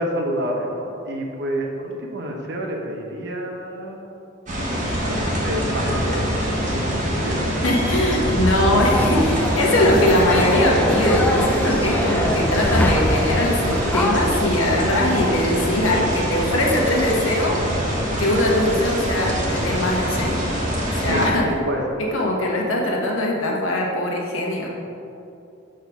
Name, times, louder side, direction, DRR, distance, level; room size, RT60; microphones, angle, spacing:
voice 1, 0.0-4.1 4.7-6.3 6.7-7.4 21.1-22.2, equal, 55° right, 1 dB, 0.9 m, -28 dB
sound 1, 4.5-21.3, equal, 40° right, 1.3 m, -24 dB
voice 2, 7.6-17.6 18.2-20.4 20.9-21.5 22.0-24.7, left 1 dB, 85° left, -1 dB, 1.2 m, -21 dB
sound 2, 8.7-14.1, left 1 dB, 10° left, 0.4 m, -24 dB
6.4 x 3.8 x 5.8 m, 2.8 s
head